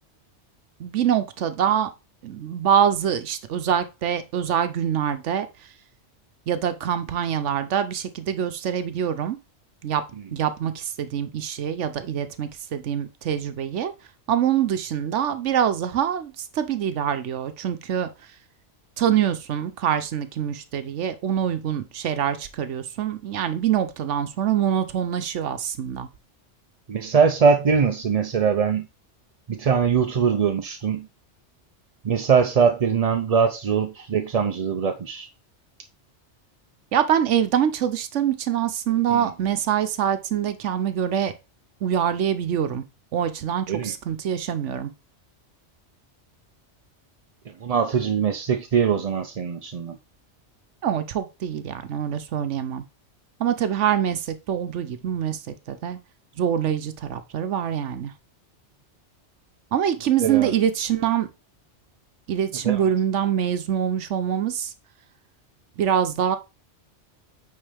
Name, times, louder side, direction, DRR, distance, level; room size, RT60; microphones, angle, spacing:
voice 1, 0.8-1.9 2.2-5.5 6.5-9.4 9.8-10.0 10.3-13.9 14.3-18.1 19.0-26.1 36.9-41.3 41.8-42.8 43.1-44.9 50.8-52.8 53.4-56.0 56.4-58.1 59.7-61.3 62.3-64.7 65.8-66.4, right 9 dB, 85° right, 1.0 m, -24 dB
voice 2, 26.9-28.9 29.5-31.1 32.0-35.3 39.1-39.3 43.7-43.9 47.6-50.0 60.2-60.5 62.6-62.8, right 6 dB, 50° right, 0.5 m, -22 dB
8.9 x 3.9 x 3.4 m
omnidirectional pair, 1.2 m